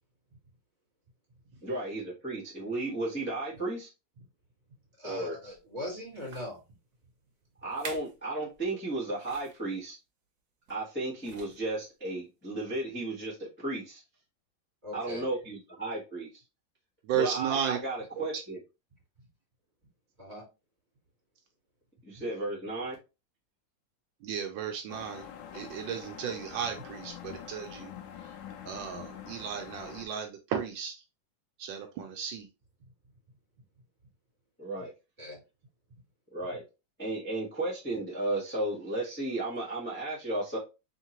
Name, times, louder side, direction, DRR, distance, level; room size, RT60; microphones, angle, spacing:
voice 1, 1.6-3.9 5.0-5.3 7.6-10.0 10.7-14.0 14.9-16.3 17.2-18.6 22.0-23.0 34.6-34.9 36.3-36.6 37.0-40.6, right 2 dB, 10° left, 0.9 m, -34 dB
voice 2, 5.0-6.6 14.8-15.3 20.2-20.4 22.1-22.2 35.2-35.4, left 1 dB, 20° right, 2.8 m, -40 dB
sound 1, 5.4-5.6 6.2-6.6 7.3-7.4 7.7-8.2 8.5-8.7 9.2-9.6 10.7-10.9 11.2-11.8 12.5-12.6, right 4 dB, 60° right, 1.4 m, -46 dB
voice 3, 17.0-17.8 18.2-18.3 24.2-25.2 25.5-27.9 28.7-30.9 31.6-32.5, right 8 dB, 80° right, 1.3 m, -34 dB
sound 2, 24.9-30.1, left 9 dB, 75° left, 1.2 m, -45 dB
3.7 x 3.6 x 2.8 m
omnidirectional pair, 2.1 m